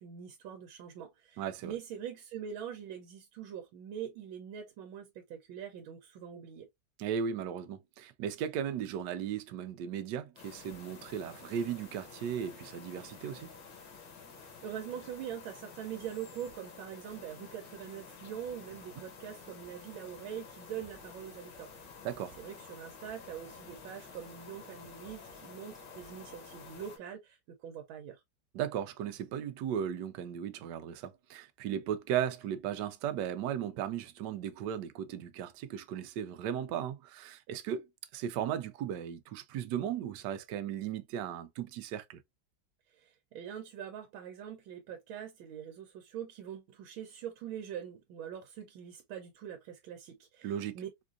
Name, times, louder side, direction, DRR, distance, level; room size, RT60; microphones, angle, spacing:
voice 1, 0.0-6.7 14.3-22.0 22.4-28.2 42.9-50.9, right 9 dB, 90° right, 1.5 m, -43 dB
voice 2, 1.4-1.8 7.0-13.5 22.0-22.3 28.5-37.9 38.1-42.2 50.4-50.8, right 9 dB, 70° right, 1.1 m, -36 dB
sound 1, 10.4-27.0, left 5 dB, 65° left, 1.6 m, -51 dB
4.4 x 2.5 x 2.4 m
omnidirectional pair, 2.2 m